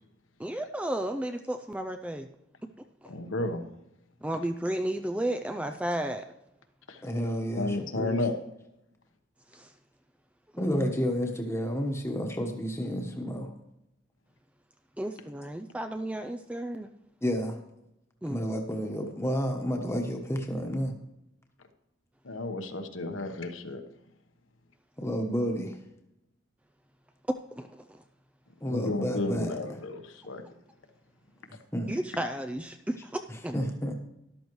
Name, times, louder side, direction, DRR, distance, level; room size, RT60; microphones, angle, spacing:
voice 1, 0.4-2.3 3.0-3.1 4.2-6.2 9.5-9.7 10.5-10.9 15.0-16.9 18.2-18.4 27.6-28.0 31.9-33.6, right 1 dB, 5° right, 6 dB, 0.4 m, -33 dB
voice 2, 3.1-3.6 6.9-7.0 7.6-8.4 22.2-23.8 28.6-30.4, left 2 dB, 75° left, 6 dB, 1.2 m, -32 dB
voice 3, 7.0-8.2 10.6-13.5 17.2-17.6 18.3-20.9 25.0-25.8 28.6-29.6 31.7-32.0 33.5-33.9, equal, 15° left, 3 dB, 1.2 m, -30 dB
13.0 x 12.0 x 3.1 m, 0.87 s
head